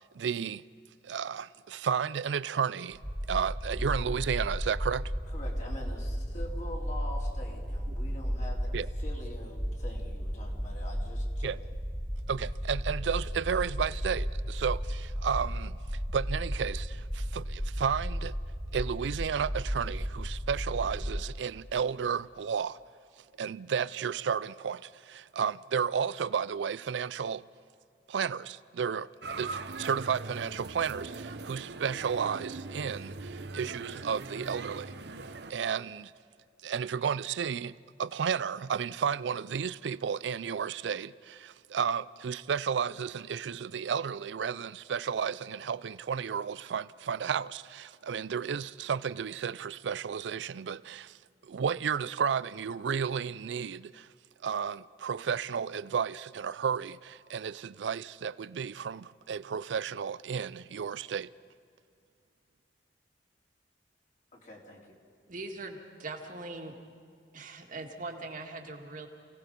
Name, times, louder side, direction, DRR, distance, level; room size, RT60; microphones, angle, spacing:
voice 1, 0.2-0.6 1.0-3.0 3.3-5.1 8.7-8.9 11.4-11.6 12.3-18.3 18.7-22.8 23.4-27.4 28.1-29.1 29.4-34.9 35.5-36.1 36.6-37.7 38.0-51.2 51.4-54.1 54.4-61.3, right 7 dB, 90° right, 0.4 m, -32 dB
sound 1, 2.9-21.2, equal, 5° left, 1.0 m, -34 dB
voice 2, 5.3-11.5 64.3-64.8, left 1 dB, 45° left, 3.5 m, -45 dB
sound 2, 29.2-35.5, right 3 dB, 70° right, 0.9 m, -41 dB
voice 3, 65.3-66.7 67.3-69.1, right 2 dB, 50° right, 2.0 m, -41 dB
28.5 x 17.5 x 5.3 m
head